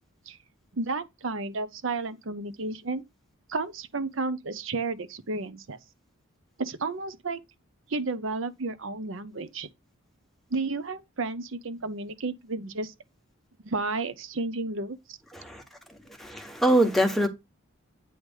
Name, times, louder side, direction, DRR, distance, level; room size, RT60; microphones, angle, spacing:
voice 1, 0.7-3.0 3.5-5.8 6.6-7.4 7.9-9.7 10.5-12.9 13.6-15.2, right 3 dB, 70° right, 0.8 m, -32 dB
voice 2, 15.3-15.6 16.2-17.3, right 1 dB, ahead, 1.3 m, -23 dB
9.4 x 3.3 x 5.3 m
head